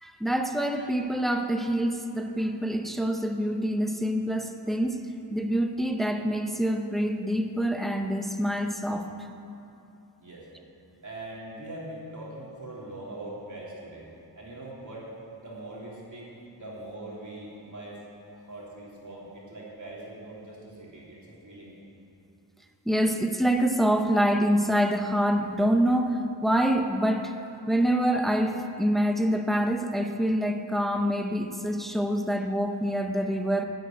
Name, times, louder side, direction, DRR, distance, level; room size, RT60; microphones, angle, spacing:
voice 1, 0.0-5.0 5.3-9.1 22.9-27.4 27.7-33.7, equal, ahead, 5 dB, 0.7 m, -26 dB
voice 2, 11.0-14.0 14.3-15.1 15.4-18.0 18.3-21.8, right 1 dB, 45° right, -6 dB, 3.5 m, -42 dB
12.5 x 7.8 x 9.3 m, 2.8 s
wide cardioid pair, 135°, 41 cm